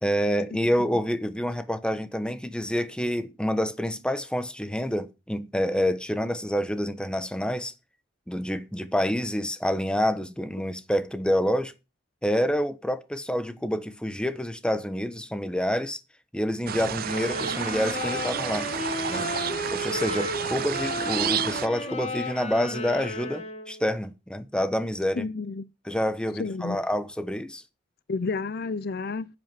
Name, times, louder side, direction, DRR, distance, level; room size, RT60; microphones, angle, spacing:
voice 1, 0.0-7.7 8.3-11.7 12.2-16.0 16.3-18.7 19.1-19.2 19.7-25.3 25.8-27.6, equal, 5° left, 1.1 m, -27 dB
sound 1, 16.7-21.7, right 8 dB, 50° right, 0.5 m, -31 dB
sound 2, 17.0-23.8, left 1 dB, 35° left, 2.6 m, -33 dB
voice 2, 25.2-25.7 26.4-26.8 28.1-29.3, left 4 dB, 55° left, 0.5 m, -31 dB
9.9 x 8.3 x 7.6 m
head